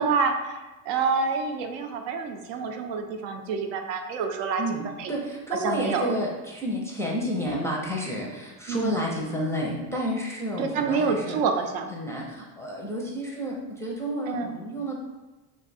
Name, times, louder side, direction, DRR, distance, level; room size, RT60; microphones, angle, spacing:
voice 1, 0.0-4.6 5.0-5.1 5.6-6.2 8.7-9.0 10.6-11.9 14.3-14.5, right 5 dB, 80° right, 5 dB, 0.6 m, -27 dB
voice 2, 4.6-11.4 11.9-15.0, equal, 5° left, -3 dB, 0.4 m, -30 dB
2.5 x 2.3 x 4.0 m, 1.1 s
supercardioid pair, 100°, 47 cm